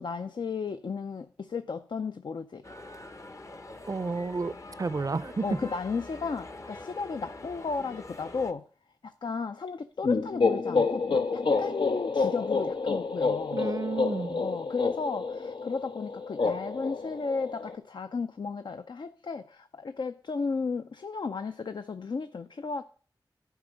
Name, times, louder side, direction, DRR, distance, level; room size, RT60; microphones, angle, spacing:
voice 1, 0.0-2.6 5.4-8.7 9.0-13.7 14.4-22.8, left 4 dB, 70° left, 0.4 m, -34 dB
sound 1, 2.6-8.5, left 2 dB, 35° left, 0.7 m, -44 dB
voice 2, 3.9-4.5 4.8-5.4 13.5-14.4, right 4 dB, 45° right, 0.4 m, -31 dB
sound 2, 10.0-17.8, left 4 dB, 90° left, 0.8 m, -28 dB
11.0 x 4.6 x 5.0 m
cardioid pair, 50°, 8 cm